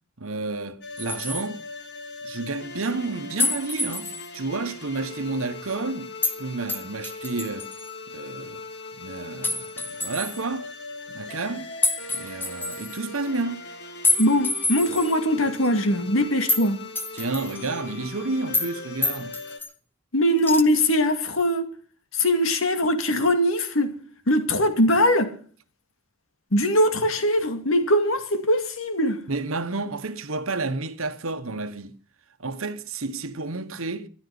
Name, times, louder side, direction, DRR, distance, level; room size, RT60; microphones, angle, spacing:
voice 1, 0.2-1.6 2.2-6.1 6.4-7.7 8.1-8.6 9.0-10.7 11.1-11.7 12.1-13.7 17.1-19.3 29.3-32.0 32.4-34.1, right 3 dB, 75° right, 1.3 m, -30 dB
sound 1, 0.8-19.6, left 3 dB, 55° left, 2.1 m, -40 dB
sound 2, 1.0-1.5 3.4-4.3 6.2-6.4 6.7-7.9 9.4-10.4 11.8-13.0 14.0-15.2 15.5-15.7 16.5-16.7 16.9-17.8 18.5-18.7 19.0-19.7 20.4-20.6, left 3 dB, 10° left, 0.9 m, -27 dB
voice 2, 14.2-16.8 20.1-21.7 22.1-24.0 24.3-25.3 26.5-29.2, left 1 dB, 70° left, 2.2 m, -21 dB
13.5 x 11.5 x 7.1 m
head